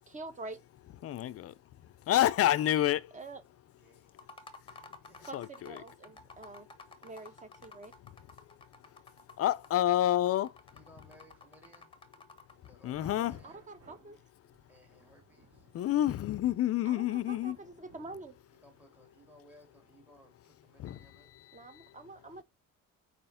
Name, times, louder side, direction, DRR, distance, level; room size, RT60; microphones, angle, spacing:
voice 1, 0.1-0.6 3.1-3.4 5.3-6.7 7.0-7.9 13.4-14.2 16.8-18.3 21.5-22.4, right 3 dB, 20° right, 1.2 m, -46 dB
voice 2, 1.0-1.5 1.8-3.2 4.7-4.8 5.3-5.8 8.0-8.1 9.4-10.6 12.8-13.4 15.7-17.6 20.8-22.0, left 13 dB, 45° left, 0.4 m, -29 dB
voice 3, 3.8-4.1 5.0-5.3 10.7-11.9 12.6-13.6 14.7-15.7 18.6-21.5, equal, 5° right, 2.9 m, -61 dB
sound 1, 4.1-12.7, left 3 dB, 15° left, 1.1 m, -53 dB
sound 2, 12.5-18.8, right 3 dB, 50° right, 4.0 m, -61 dB
7.8 x 5.0 x 5.5 m
cardioid pair, 175°, 33 cm